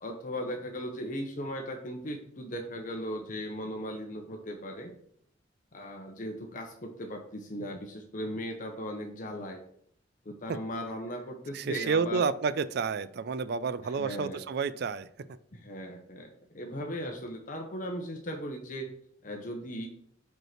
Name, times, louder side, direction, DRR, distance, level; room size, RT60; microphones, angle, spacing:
voice 1, 0.0-4.9 5.7-9.6 10.2-12.3 13.8-14.4 15.5-18.9 19.2-19.9, equal, 45° left, 3 dB, 0.8 m, -38 dB
voice 2, 11.5-15.1, right 5 dB, 60° right, 15 dB, 0.4 m, -30 dB
5.3 x 4.6 x 5.8 m, 0.67 s
head